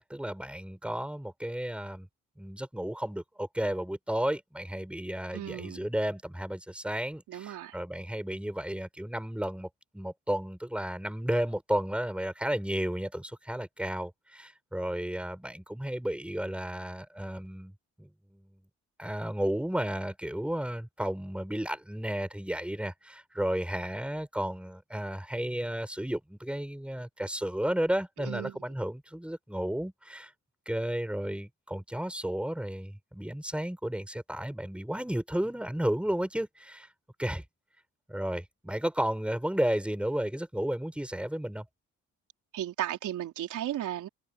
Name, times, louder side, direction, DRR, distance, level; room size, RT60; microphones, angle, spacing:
voice 1, 0.0-2.1 2.4-9.7 9.9-17.7 18.0-18.6 19.0-30.3 30.7-36.9 37.2-37.4 38.1-41.7, right 1 dB, 5° right, 5.5 m, -33 dB
voice 2, 5.3-5.9 7.3-7.8 28.2-28.6 42.5-44.1, right 12 dB, 80° right, 4.1 m, -35 dB
cardioid pair, 90°, 30 cm